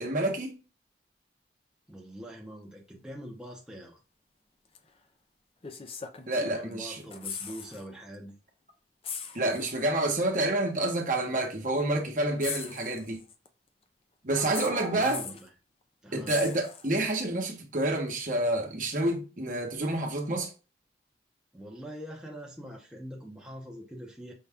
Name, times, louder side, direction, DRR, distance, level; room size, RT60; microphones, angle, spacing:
voice 1, 0.0-0.6 6.3-7.0 9.3-13.2 14.2-15.2 16.1-20.5, right 1 dB, 45° right, 0.9 m, -28 dB
voice 2, 1.9-4.0 6.5-8.4 14.6-15.5 16.0-16.3 21.5-24.3, equal, 5° right, 0.7 m, -43 dB
sound 1, 4.7-4.9 5.6-6.7 7.0-7.8 8.1-8.3 9.0-9.9 10.9-11.0 12.4-13.5 14.5-15.5 16.3-17.2 18.9-19.0, left 6 dB, 30° left, 0.4 m, -40 dB
5.5 x 2.3 x 3.5 m
head